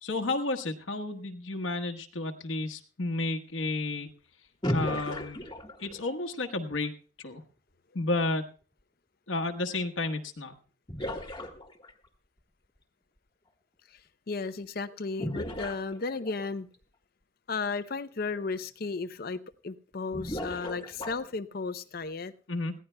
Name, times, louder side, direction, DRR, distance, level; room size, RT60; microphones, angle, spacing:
voice 1, 0.0-4.1 4.7-5.4 5.8-7.0 7.2-7.4 7.9-8.5 9.3-10.5 22.5-22.7, left 2 dB, 85° left, 4 dB, 1.2 m, -31 dB
sound 1, 4.6-6.1 10.0-10.1 10.9-12.1 15.2-16.5 17.8-17.9 18.4-18.5 20.1-21.4, equal, 20° left, 1.4 m, -35 dB
voice 2, 14.3-16.7 17.5-22.3, left 4 dB, 50° left, 13 dB, 0.6 m, -34 dB
21.0 x 15.5 x 2.2 m, 0.39 s
head